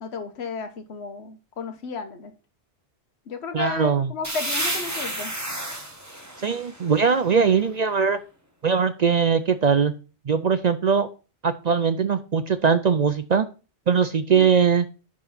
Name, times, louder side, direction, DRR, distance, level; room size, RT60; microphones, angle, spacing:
voice 1, 0.0-2.3 3.3-5.3 14.3-14.5, left 5 dB, 65° left, 5 dB, 1.4 m, -33 dB
voice 2, 3.5-4.1 6.4-8.2 8.6-9.9 10.3-11.1 11.4-13.5 13.9-14.9, right 6 dB, 50° right, 11 dB, 0.5 m, -21 dB
sound 1, 4.2-7.9, right 1 dB, 15° right, 1.5 m, -32 dB
10.5 x 3.8 x 5.6 m, 0.34 s
omnidirectional pair, 1.2 m